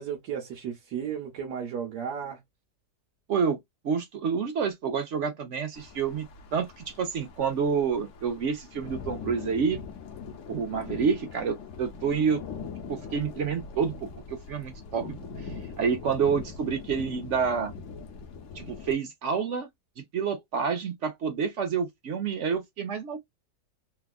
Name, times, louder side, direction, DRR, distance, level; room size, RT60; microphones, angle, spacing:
voice 1, 0.0-2.4, right 8 dB, 85° right, 1.4 m, -34 dB
voice 2, 3.3-3.6 3.8-6.3 6.5-9.8 10.5-12.4 12.9-17.7 18.5-19.7 20.0-23.2, right 6 dB, 60° right, 0.8 m, -28 dB
sound 1, 5.7-18.9, left 5 dB, 60° left, 0.9 m, -42 dB
3.4 x 2.3 x 2.3 m
omnidirectional pair, 1.7 m